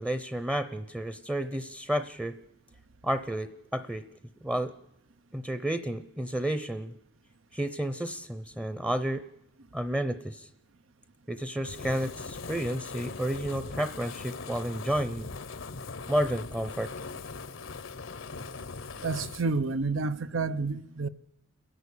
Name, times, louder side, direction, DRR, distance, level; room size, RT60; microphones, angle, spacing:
voice 1, 0.0-2.4 3.0-4.0 4.4-4.7 5.3-6.9 7.5-9.2 9.7-10.5 11.3-15.3 16.1-16.9, right 1 dB, 10° right, 0.7 m, -31 dB
Fire, 11.6-19.5, left 4 dB, 80° left, 0.9 m, -40 dB
voice 2, 19.0-21.1, right 3 dB, 90° right, 0.8 m, -29 dB
30.0 x 11.5 x 8.4 m
head